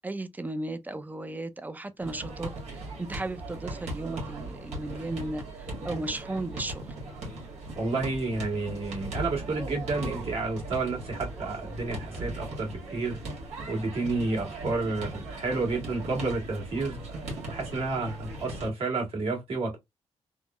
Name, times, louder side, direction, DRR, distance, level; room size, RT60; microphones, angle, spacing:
voice 1, 0.0-6.9, right 2 dB, 15° right, 0.4 m, -35 dB
sound 1, 2.0-18.7, right 1 dB, 90° right, 1.5 m, -38 dB
voice 2, 7.7-13.2 13.7-17.0 17.5-19.8, right 3 dB, 65° right, 1.6 m, -30 dB
3.6 x 2.1 x 2.3 m
cardioid pair, 85°, 11 cm